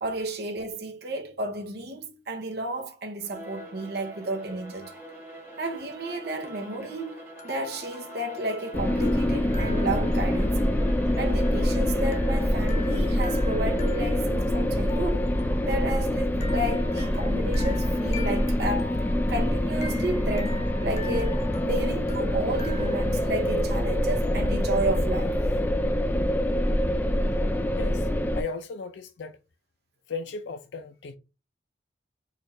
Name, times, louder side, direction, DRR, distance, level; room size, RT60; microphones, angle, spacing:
voice 1, 0.0-4.9 5.6-7.2 7.4-10.6 11.2-15.3 15.6-25.4, right 1 dB, 65° right, 0.7 m, -32 dB
Bowed string instrument, 3.2-12.7, right 1 dB, 15° right, 1.5 m, -44 dB
sound 1, 4.7-5.2 6.4-24.7, left 4 dB, 35° left, 0.7 m, -44 dB
sound 2, 8.7-28.4, left 1 dB, 10° left, 0.4 m, -25 dB
voice 2, 27.8-28.1 28.3-29.4 30.1-31.2, left 4 dB, 80° left, 0.4 m, -36 dB
4.4 x 2.4 x 3.2 m
head